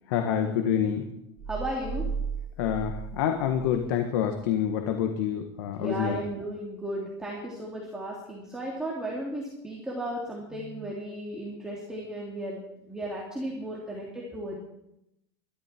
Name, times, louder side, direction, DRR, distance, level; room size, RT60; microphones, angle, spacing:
voice 1, 0.1-1.2 2.6-6.2, left 9 dB, 70° left, 5 dB, 1.6 m, -27 dB
sound 1, 1.4-3.9 4.3-4.4, right 5 dB, 35° right, 3.4 m, -35 dB
voice 2, 1.5-2.0 5.8-14.6, right 1 dB, 5° right, -4 dB, 3.0 m, -35 dB
22.5 x 13.0 x 4.5 m, 0.85 s
supercardioid pair, 145°, 13 cm